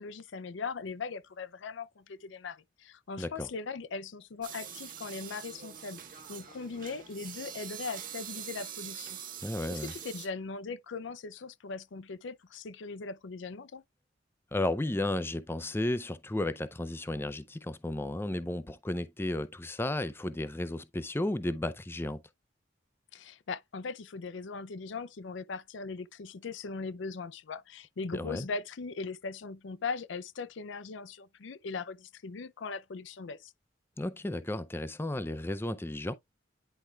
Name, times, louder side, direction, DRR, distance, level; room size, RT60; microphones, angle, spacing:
voice 1, 0.0-9.2 9.7-13.8 23.1-33.5, left 4 dB, 70° left, 0.5 m, -39 dB
sound 1, 4.4-10.3, right 9 dB, 45° right, 1.3 m, -44 dB
voice 2, 9.4-9.9 14.5-22.2 28.1-28.5 34.0-36.1, left 1 dB, 10° left, 0.4 m, -33 dB
10.0 x 4.4 x 2.3 m
head